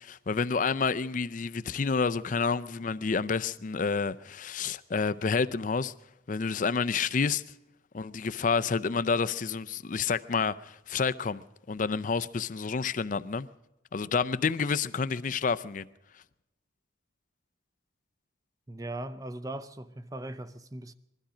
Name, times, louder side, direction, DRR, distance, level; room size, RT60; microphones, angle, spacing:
voice 1, 0.0-5.9 6.3-7.4 7.9-11.4 11.7-13.5 13.9-15.9, left 5 dB, 40° left, 0.5 m, -29 dB
voice 2, 18.7-20.9, right 1 dB, 20° right, 0.6 m, -39 dB
21.0 x 13.0 x 5.0 m
head